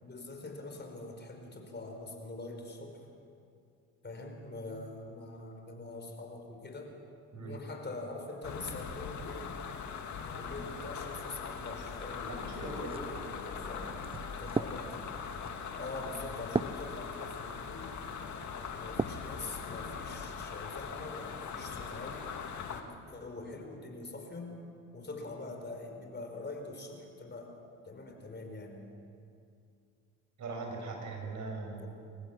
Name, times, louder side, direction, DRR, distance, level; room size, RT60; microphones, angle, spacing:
voice 1, 0.0-3.1 4.0-7.0 7.3-9.6 10.4-13.9 14.4-15.1 15.8-17.9 18.8-22.3 22.7-24.6 24.9-27.5 27.8-28.8, left 2 dB, 30° left, 3 dB, 4.6 m, -44 dB
sound 1, 8.4-22.8, left 6 dB, 55° left, 2.3 m, -41 dB
sound 2, 10.1-13.9, equal, 10° left, 7.6 m, -54 dB
voice 2, 12.5-12.9 30.4-31.8, right 3 dB, 55° right, 1 dB, 6.7 m, -40 dB
sound 3, 12.9-19.3 19.8-20.5, right 4 dB, 15° right, 0.6 m, -39 dB
26.5 x 15.0 x 7.5 m, 2.4 s
supercardioid pair, 65°, 34 cm